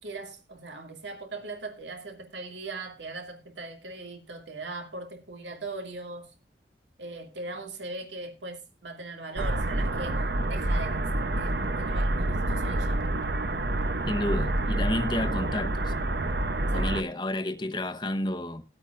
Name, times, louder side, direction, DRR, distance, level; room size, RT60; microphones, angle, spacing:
voice 1, 0.0-6.3 7.0-13.0 16.7-16.9, right 3 dB, 90° right, 2.4 m, -40 dB
sound 1, 9.3-17.0, right 1 dB, 65° right, 0.9 m, -28 dB
voice 2, 14.1-15.9 16.7-18.6, left 1 dB, 25° left, 1.0 m, -30 dB
19.5 x 8.6 x 2.6 m
head